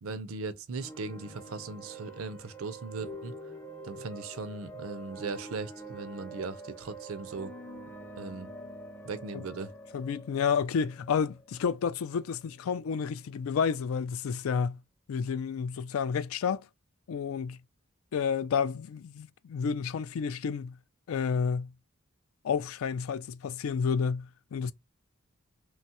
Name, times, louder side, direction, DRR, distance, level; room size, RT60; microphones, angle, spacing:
voice 1, 0.0-3.3 3.8-7.5 8.2-8.5 9.0-9.7, right 4 dB, 80° right, 0.5 m, -38 dB
sound 1, 0.7-12.4, right 2 dB, 10° left, 0.4 m, -46 dB
voice 2, 9.9-14.8 15.1-16.7 17.1-17.6 18.1-20.7 21.1-21.7 22.4-24.7, left 6 dB, 80° left, 0.3 m, -30 dB
3.1 x 2.3 x 2.7 m
head